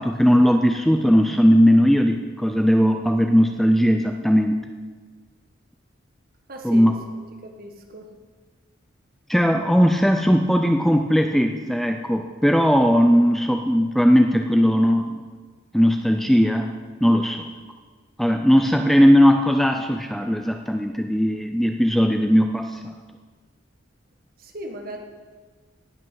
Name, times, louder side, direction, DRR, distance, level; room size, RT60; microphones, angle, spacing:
voice 1, 0.0-4.6 6.6-6.9 9.3-15.2 15.7-16.7 17.0-17.5 18.2-22.9, equal, ahead, 5 dB, 0.4 m, -18 dB
voice 2, 6.5-6.8 7.6-8.0 24.4-25.0, right 1 dB, 45° right, 3 dB, 1.5 m, -37 dB
18.0 x 6.2 x 6.2 m, 1.5 s
head